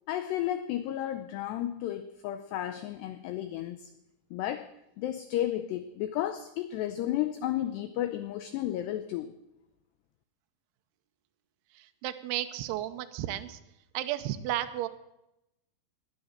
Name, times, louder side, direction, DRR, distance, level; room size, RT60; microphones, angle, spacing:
voice 1, 0.1-3.9 4.3-4.7 5.0-9.3, left 12 dB, 90° left, 11 dB, 2.3 m, -33 dB
voice 2, 11.7-13.6 13.9-14.9, right 13 dB, 90° right, 8 dB, 2.3 m, -33 dB
18.5 x 10.5 x 6.5 m, 0.88 s
omnidirectional pair, 5.7 m